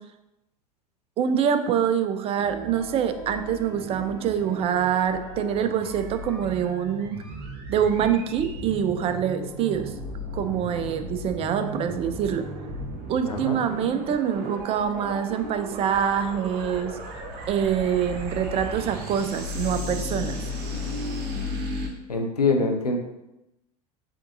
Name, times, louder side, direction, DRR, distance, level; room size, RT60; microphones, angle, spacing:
voice 1, 1.2-7.2 7.7-9.9 10.3-12.4 13.1-16.9 17.5-20.4, right 8 dB, 30° right, 9 dB, 0.4 m, -25 dB
sound 1, 2.4-21.9, left 1 dB, 50° right, 1.1 m, -35 dB
voice 2, 13.3-13.6 22.1-23.0, left 3 dB, 90° left, 3 dB, 0.6 m, -24 dB
5.0 x 3.6 x 2.6 m, 0.92 s
figure-of-eight pair, 80°, 20 cm